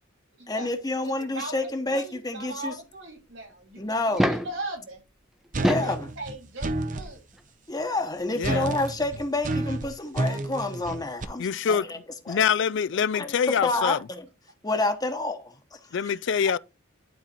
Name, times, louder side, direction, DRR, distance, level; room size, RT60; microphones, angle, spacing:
voice 1, 0.5-2.8 3.8-4.4 5.6-6.1 7.7-12.0 12.2-12.4 13.1-14.3 14.6-16.2 16.4-16.5, left 2 dB, 20° left, 1.1 m, -29 dB
voice 2, 1.0-1.5 1.9-5.0 5.6-5.9 6.2-7.2, right 2 dB, 60° right, 3.4 m, -38 dB
sound 1, 4.0-4.6 5.4-6.0 7.3-7.4 9.2-9.3 9.5-9.6, equal, ahead, 0.7 m, -25 dB
sound 2, 5.5-7.1 8.4-11.2, right 2 dB, 40° right, 0.7 m, -30 dB
voice 3, 8.4-8.7 11.4-11.8 12.3-14.0 15.9-16.6, left 7 dB, 60° left, 0.4 m, -25 dB
12.0 x 4.2 x 4.3 m
head